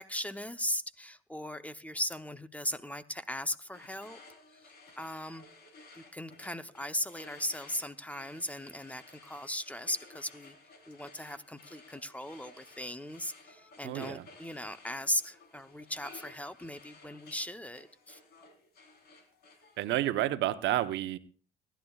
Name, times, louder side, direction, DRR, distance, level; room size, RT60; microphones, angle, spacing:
voice 1, 0.0-4.2 5.0-5.5 6.0-10.6 10.9-18.2, left 1 dB, 5° left, 12 dB, 0.8 m, -38 dB
sound 1, 3.7-19.9, left 3 dB, 55° left, 3.8 m, -56 dB
voice 2, 13.8-14.2 19.8-21.2, right 14 dB, 70° right, 11 dB, 0.9 m, -30 dB
25.5 x 11.5 x 2.4 m, 0.38 s
supercardioid pair, 80°, 19 cm